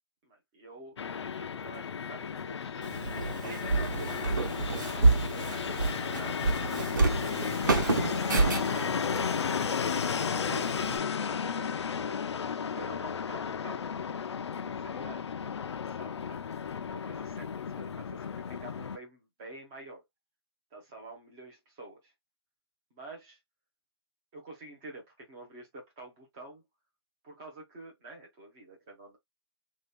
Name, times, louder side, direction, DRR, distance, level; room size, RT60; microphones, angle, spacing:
voice 1, 0.2-2.9 3.4-4.5 4.8-6.5 7.2-10.8 11.3-12.4 12.7-13.9 14.8-15.3 15.8-16.5 16.9-20.0 20.7-22.1 22.9-23.4 24.3-26.6 27.2-29.2, right 2 dB, 5° right, 0.3 m, -48 dB
Fixed-wing aircraft airplane, 1.0-19.0, left 6 dB, 90° left, 0.5 m, -34 dB
Walk footsteps, 2.8-11.0, right 3 dB, 45° right, 1.0 m, -29 dB
3.4 x 2.8 x 3.3 m
hypercardioid pair, 175°, 14 cm